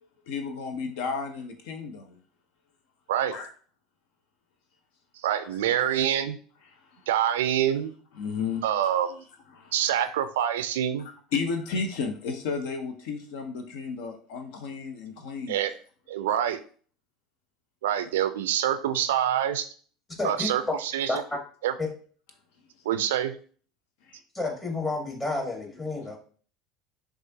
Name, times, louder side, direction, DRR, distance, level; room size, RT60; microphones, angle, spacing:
voice 1, 0.3-2.2 3.3-3.5 6.7-7.0 8.1-8.7 9.5-10.0 11.0-15.6 24.0-24.2, left 5 dB, 65° left, 6 dB, 0.6 m, -33 dB
voice 2, 5.2-6.4 7.1-7.9 8.6-9.2 9.7-11.1 15.5-15.7 16.1-16.6 17.8-19.7 20.2-21.2 21.6-21.7 22.9-23.3, right 10 dB, 75° right, 11 dB, 0.3 m, -26 dB
voice 3, 20.2-20.5 21.1-21.2 24.3-26.2, left 2 dB, 25° left, 1 dB, 1.6 m, -30 dB
6.1 x 2.4 x 2.7 m, 0.44 s
hypercardioid pair, 70°, 0 cm